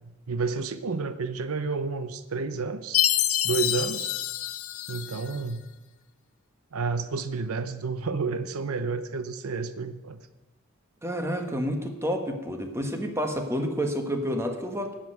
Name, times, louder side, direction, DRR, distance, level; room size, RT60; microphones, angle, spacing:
voice 1, 0.3-3.0 3.4-4.1 4.9-5.7 6.7-10.2, right 4 dB, 75° right, 11 dB, 0.7 m, -30 dB
Chime, 2.9-5.4, left 13 dB, 70° left, 0.7 m, -27 dB
voice 2, 11.0-14.9, equal, 10° right, 4 dB, 1.3 m, -29 dB
11.0 x 7.6 x 9.0 m, 1.1 s
head